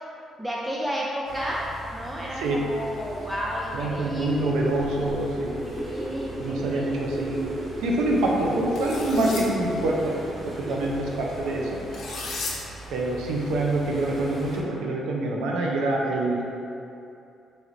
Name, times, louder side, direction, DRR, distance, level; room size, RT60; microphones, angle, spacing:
voice 1, 0.4-4.6 5.6-6.9 10.7-11.2, equal, 10° right, -4 dB, 0.3 m, -32 dB
sound 1, 1.2-14.6, right 1 dB, 50° right, 1.0 m, -42 dB
voice 2, 3.7-5.6 6.4-7.4 7.8-10.2 10.4-11.8 12.9-16.4, right 2 dB, 90° right, -2 dB, 0.5 m, -26 dB
sound 2, 4.3-11.1 11.4-11.5, equal, 20° left, 1.1 m, -33 dB
sound 3, 8.7-9.4 11.9-12.5, left 3 dB, 70° left, 0.6 m, -34 dB
4.0 x 3.2 x 2.5 m, 2.7 s
cardioid pair, 90°, 0 cm